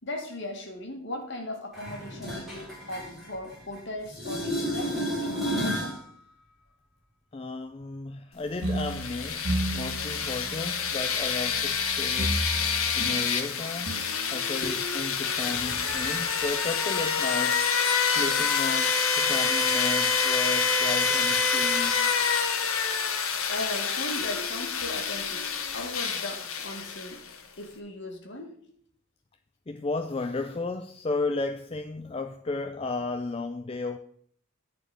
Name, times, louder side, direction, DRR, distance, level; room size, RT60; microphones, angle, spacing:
voice 1, 0.0-6.0 14.6-14.7 15.6-15.8 23.5-27.2 27.6-28.5, left 1 dB, 55° left, 2.0 m, -38 dB
sound 1, 1.7-3.8 4.1-6.0 11.7-11.8, equal, ahead, 3.5 m, -32 dB
voice 2, 7.3-14.0 14.3-17.6 18.0-22.1 29.7-34.0, left 3 dB, 25° left, 0.4 m, -34 dB
sound 2, 8.6-16.1, right 1 dB, 60° right, 2.0 m, -35 dB
sound 3, 8.7-27.3, left 6 dB, 70° left, 1.3 m, -27 dB
11.0 x 4.4 x 7.8 m
head